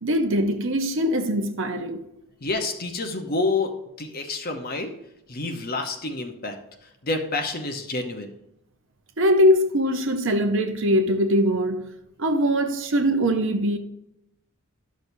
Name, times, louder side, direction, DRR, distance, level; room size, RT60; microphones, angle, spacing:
voice 1, 0.0-2.0 9.2-11.9 12.2-13.8, equal, 55° right, 0.8 m, -22 dB
voice 2, 2.4-4.9 5.3-6.6 6.8-8.3, left 3 dB, 40° left, 0.9 m, -28 dB
11.5 x 6.4 x 2.7 m
head